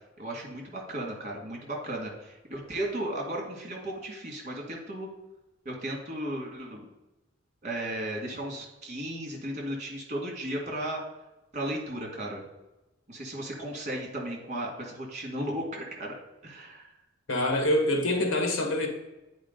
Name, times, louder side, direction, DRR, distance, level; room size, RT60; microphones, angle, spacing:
voice 1, 0.2-5.1 5.7-6.9 7.6-11.0 11.5-12.4 13.1-16.2 16.4-16.9, right 1 dB, 35° right, -1 dB, 2.2 m, -35 dB
voice 2, 17.3-18.9, left 1 dB, 75° left, 2 dB, 1.6 m, -25 dB
9.3 x 4.9 x 3.9 m, 1.0 s
head